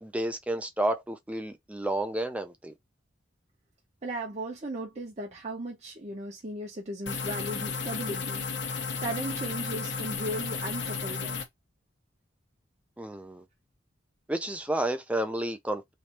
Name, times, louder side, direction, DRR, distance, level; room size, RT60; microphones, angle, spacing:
voice 1, 0.0-2.7 13.0-13.4 14.3-15.9, right 1 dB, 5° right, 0.5 m, -31 dB
voice 2, 4.0-8.5 9.0-11.4, right 1 dB, 35° right, 0.9 m, -36 dB
sound 1, 7.1-11.4, left 5 dB, 65° left, 1.1 m, -33 dB
3.3 x 2.7 x 2.9 m
head